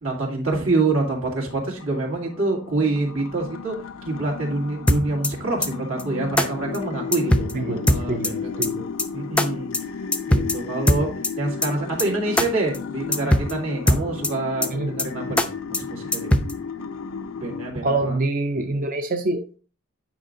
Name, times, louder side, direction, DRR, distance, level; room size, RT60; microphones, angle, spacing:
voice 1, 0.0-3.8 4.0-8.6 9.1-9.7 10.3-11.1 11.4-16.3 17.4-18.2, right 2 dB, 85° right, 2.2 m, -26 dB
sound 1, 1.1-17.7, left 5 dB, 85° left, 0.5 m, -34 dB
sound 2, 4.9-5.3 5.6-5.7 6.0-6.1 6.4-6.5 6.7-6.8 7.1-7.5 7.9-8.3 8.6-8.7 9.0-9.1 9.4-9.5 9.7-9.8 10.1-10.6 10.9-11.3 11.6-11.7 12.0-12.1 12.4-12.5 12.7-12.8 13.1-13.5 13.9-14.3 14.6-14.7 15.0-15.1 15.4-15.5 15.7-15.8 16.1-16.5, left 1 dB, 5° left, 0.4 m, -19 dB
voice 2, 7.5-8.9 14.7-14.9 17.8-19.6, right 2 dB, 40° right, 0.5 m, -26 dB
9.1 x 4.9 x 2.5 m
head